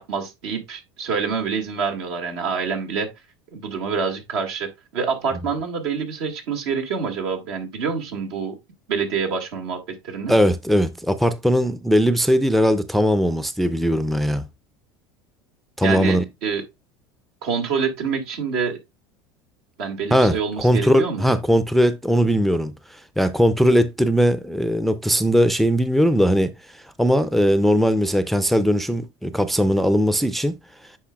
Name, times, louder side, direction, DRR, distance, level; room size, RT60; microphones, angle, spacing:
voice 1, 0.0-3.1 3.5-8.6 8.9-10.3 15.8-16.6 17.4-18.8 19.8-21.3, right 5 dB, 70° right, 1.9 m, -26 dB
voice 2, 10.3-14.4 15.8-16.2 20.1-22.7 23.2-26.5 27.0-30.5, equal, ahead, 0.5 m, -19 dB
8.5 x 4.8 x 2.3 m
hypercardioid pair, 85°, 14 cm